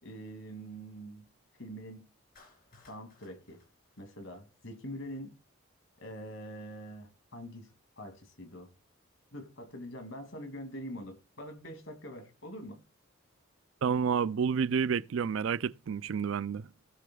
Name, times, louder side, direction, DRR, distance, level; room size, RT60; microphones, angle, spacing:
voice 1, 0.0-1.3 1.6-2.1 2.7-3.6 4.0-5.4 6.0-7.7 8.0-8.7 9.3-12.8, equal, 65° left, 2.5 m, -44 dB
Clapping, 2.4-4.8, left 3 dB, 45° left, 4.2 m, -63 dB
voice 2, 13.8-16.7, right 6 dB, 70° right, 0.4 m, -29 dB
18.0 x 6.6 x 2.3 m
head